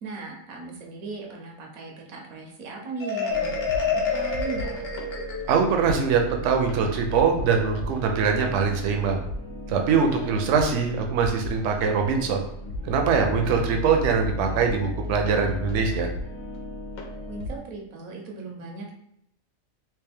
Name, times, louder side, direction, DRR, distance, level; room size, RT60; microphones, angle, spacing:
voice 1, 0.0-4.9 17.3-18.9, right 3 dB, 90° right, 0 dB, 1.3 m, -38 dB
Marimba xylophone, 3.0-5.8, left 4 dB, 50° left, 0.9 m, -28 dB
sound 1, 3.3-17.6, left 1 dB, 80° left, 1.1 m, -35 dB
voice 2, 5.5-9.2 9.7-12.4 12.8-16.1, right 5 dB, 70° right, 3 dB, 0.8 m, -23 dB
3.4 x 2.9 x 3.4 m, 0.77 s
omnidirectional pair, 1.4 m